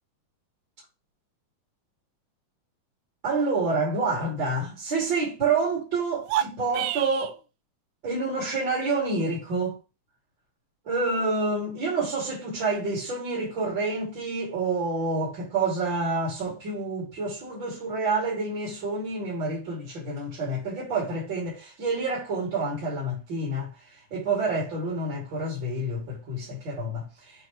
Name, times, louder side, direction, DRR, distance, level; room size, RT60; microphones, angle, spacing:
voice 1, 3.2-7.4 8.0-9.8 10.8-27.5, right 3 dB, 35° right, 3.2 m, -28 dB
sound 1, 6.2-7.3, right 12 dB, 90° right, 2.2 m, -29 dB
8.3 x 4.4 x 3.2 m
omnidirectional pair, 3.8 m